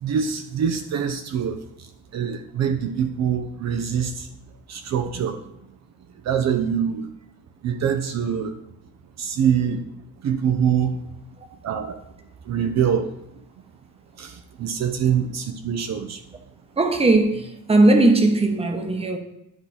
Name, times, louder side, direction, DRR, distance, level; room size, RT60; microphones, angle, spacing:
voice 1, 0.0-4.3 4.7-5.4 6.2-7.1 7.6-8.6 9.2-9.9 10.2-11.0 11.6-12.0 12.4-13.1 14.1-16.2, right 8 dB, 60° right, 0.7 m, -24 dB
voice 2, 16.8-19.2, right 2 dB, 20° right, 1.0 m, -18 dB
10.5 x 4.0 x 4.1 m
cardioid pair, 105°, 30 cm